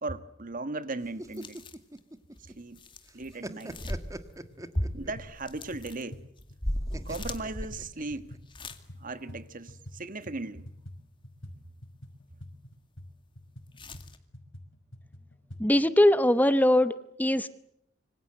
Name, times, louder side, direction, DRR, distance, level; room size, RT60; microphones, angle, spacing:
voice 1, 0.0-1.6 2.6-2.8 3.1-3.8 4.9-6.2 7.0-8.3 9.0-10.6, right 2 dB, 45° right, 1.6 m, -37 dB
sound 1, 1.0-2.8 3.1-5.3 6.9-8.4, right 1 dB, 15° right, 1.6 m, -42 dB
sound 2, 1.3-2.0 2.4-4.4 4.7-8.8 9.2-9.3 13.8-14.2, equal, 25° left, 2.2 m, -36 dB
sound 3, 4.4-4.7 5.0-10.0 10.3-15.6, left 1 dB, 70° left, 5.7 m, -48 dB
voice 2, 15.6-17.5, left 1 dB, 10° left, 1.0 m, -22 dB
26.5 x 25.0 x 7.9 m
head